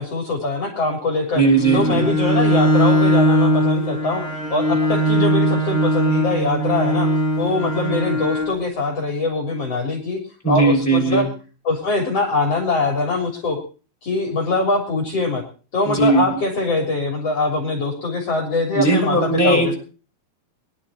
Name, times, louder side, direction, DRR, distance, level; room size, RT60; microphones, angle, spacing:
voice 1, 0.0-1.4 1.7-4.2 4.5-7.1 7.4-10.2 10.5-11.2 11.7-13.6 14.0-15.4 15.7-19.7, left 3 dB, 40° left, 0 dB, 4.3 m, -23 dB
voice 2, 1.3-2.0 10.4-11.3 15.8-16.4 18.7-19.7, right 3 dB, 5° left, -2 dB, 6.0 m, -18 dB
Bowed string instrument, 1.5-8.6, equal, 20° right, 7.0 m, -19 dB
23.5 x 12.0 x 4.3 m, 0.38 s
omnidirectional pair, 4.4 m